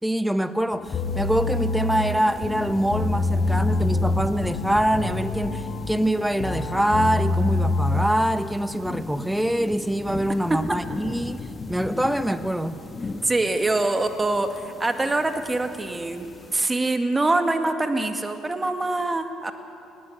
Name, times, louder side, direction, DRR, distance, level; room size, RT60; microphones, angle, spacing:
voice 1, 0.0-12.8, right 1 dB, 5° right, 12 dB, 1.1 m, -24 dB
sound 1, 0.7-8.1, left 3 dB, 50° left, 1.7 m, -26 dB
sound 2, 0.8-16.7, left 3 dB, 30° left, 1.4 m, -38 dB
voice 2, 13.1-19.5, right 2 dB, 20° right, 7 dB, 1.9 m, -24 dB
20.0 x 17.0 x 8.0 m, 2.6 s
hypercardioid pair, 55°, 0 cm